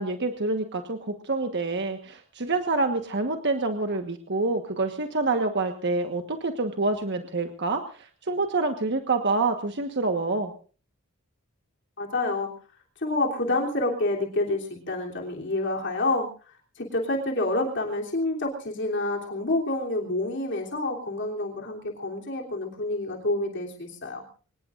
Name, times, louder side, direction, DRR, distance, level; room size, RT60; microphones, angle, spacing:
voice 1, 0.0-10.5, right 3 dB, 55° right, 6 dB, 1.4 m, -27 dB
voice 2, 12.0-12.5 13.0-24.2, left 2 dB, 55° left, 0 dB, 3.3 m, -28 dB
25.0 x 19.5 x 2.5 m, 0.38 s
head